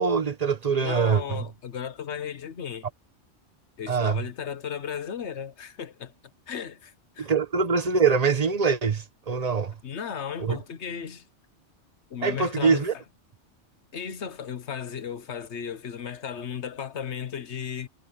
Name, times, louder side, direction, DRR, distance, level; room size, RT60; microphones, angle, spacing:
voice 1, 0.0-1.4 3.9-4.2 7.2-9.8 10.4-10.6 12.2-12.9, right 5 dB, 35° right, 1.3 m, -24 dB
voice 2, 0.7-2.9 3.8-6.1 6.5-7.3 9.8-11.3 12.1-12.9 13.9-17.9, left 7 dB, 70° left, 1.4 m, -35 dB
omnidirectional pair, 1.2 m